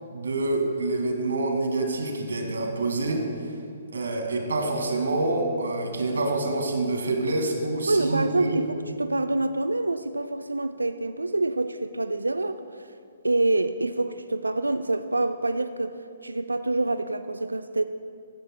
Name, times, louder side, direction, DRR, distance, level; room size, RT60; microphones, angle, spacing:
voice 1, 0.1-3.2 3.9-8.6, right 2 dB, 75° right, 3 dB, 2.0 m, -27 dB
voice 2, 7.9-12.6 13.2-15.9 16.2-17.8, right 2 dB, 90° right, 10 dB, 0.4 m, -26 dB
15.5 x 15.0 x 2.2 m, 2.4 s
figure-of-eight pair, 130°, 0 cm